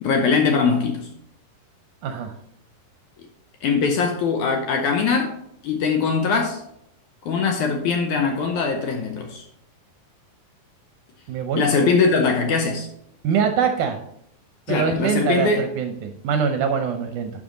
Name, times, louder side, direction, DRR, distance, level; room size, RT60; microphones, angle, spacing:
voice 1, 0.0-1.1 3.6-5.4 5.6-6.6 7.2-9.5 11.6-12.9 14.7-15.7, left 4 dB, 70° left, 1.9 m, -21 dB
voice 2, 2.0-2.3 11.3-11.6 13.2-14.0 14.7-17.3, right 6 dB, 75° right, 1.9 m, -23 dB
11.0 x 6.1 x 3.8 m
omnidirectional pair, 4.2 m